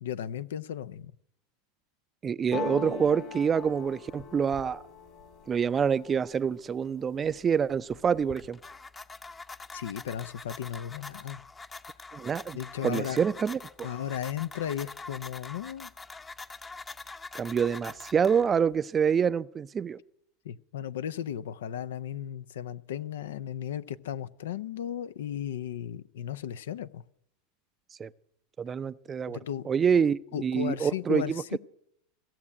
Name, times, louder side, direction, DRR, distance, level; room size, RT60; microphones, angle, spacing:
voice 1, 0.0-1.1 9.7-11.4 12.5-13.2 13.8-15.9 20.4-27.0 29.3-29.7 30.3-31.6, left 10 dB, 75° left, 0.5 m, -35 dB
voice 2, 2.2-4.8 5.5-8.6 12.1-13.9 17.3-20.0 28.0-28.1 28.6-29.4 29.7-31.6, right 7 dB, 25° right, 0.5 m, -27 dB
sound 1, 2.5-6.4 6.8-7.4 7.7-8.5, left 6 dB, 50° left, 2.3 m, -40 dB
sound 2, 8.1-18.8, left 3 dB, 20° left, 0.8 m, -45 dB
15.5 x 7.4 x 9.8 m
hypercardioid pair, 90°, 0 cm